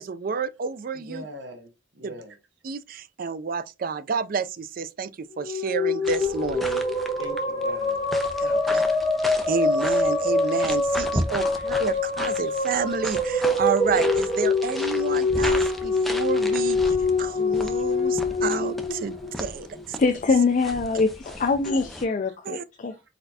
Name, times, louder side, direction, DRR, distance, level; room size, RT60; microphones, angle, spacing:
voice 1, 0.0-1.2 2.0-2.1 2.6-6.8 8.4-8.8 9.5-20.0 22.5-22.6, right 5 dB, 50° right, 0.4 m, -30 dB
voice 2, 0.9-1.7 1.9-2.4 2.9-3.0 6.0-6.1 7.2-8.0 8.6-9.0 11.6-11.7 12.4-12.5 15.1-15.4 16.5-16.6 17.9-18.3 22.0-22.1 22.9-23.0, right 1 dB, 75° right, 1.1 m, -43 dB
sound 1, 5.3-19.8, left 2 dB, 20° left, 1.5 m, -25 dB
sound 2, 6.0-22.0, equal, ahead, 0.6 m, -36 dB
voice 3, 20.0-22.9, left 4 dB, 45° left, 0.4 m, -23 dB
4.4 x 4.1 x 2.7 m
head